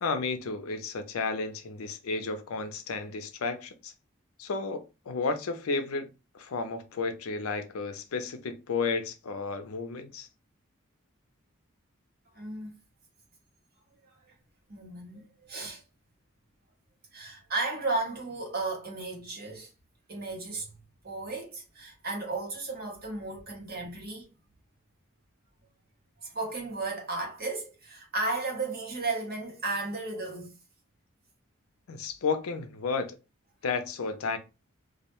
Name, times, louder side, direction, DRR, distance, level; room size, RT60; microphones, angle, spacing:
voice 1, 0.0-3.9 4.4-6.1 6.3-10.3 31.9-33.2 33.6-34.4, left 4 dB, 85° left, 0.5 m, -32 dB
voice 2, 12.3-12.7 14.7-15.8 17.1-19.7 20.1-20.7 21.0-24.3 26.2-30.5, right 3 dB, 45° right, 0.9 m, -34 dB
2.3 x 2.1 x 2.9 m
head